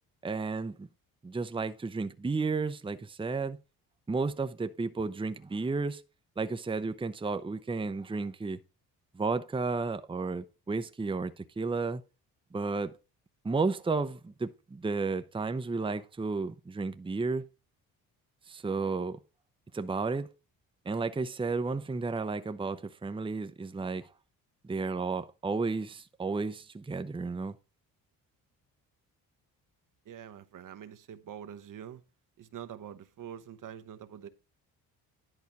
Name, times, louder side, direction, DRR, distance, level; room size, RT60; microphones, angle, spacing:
voice 1, 0.2-0.9 1.2-3.6 4.1-6.0 6.4-8.6 9.1-12.0 12.5-13.0 13.4-17.5 18.5-19.2 19.7-20.3 20.9-24.1 24.6-27.6, right 4 dB, 15° right, 0.7 m, -32 dB
voice 2, 30.1-32.0 32.4-34.3, right 9 dB, 60° right, 1.0 m, -45 dB
11.0 x 4.0 x 5.9 m
cardioid pair, 75°, 37 cm